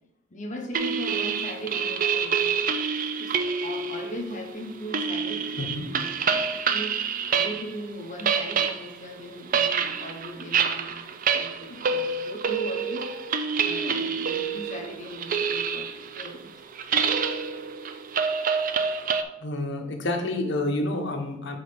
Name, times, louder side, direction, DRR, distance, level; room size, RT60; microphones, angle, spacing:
voice 1, 0.3-2.6 3.2-6.9 7.3-13.1 13.6-15.9 16.2-16.5, equal, 40° left, 2 dB, 1.0 m, -38 dB
sound 1, 0.7-7.8 8.0-19.2, right 6 dB, 45° right, 0.4 m, -27 dB
voice 2, 19.4-21.6, left 2 dB, 65° left, 4 dB, 1.0 m, -29 dB
6.3 x 4.0 x 5.1 m, 0.87 s
head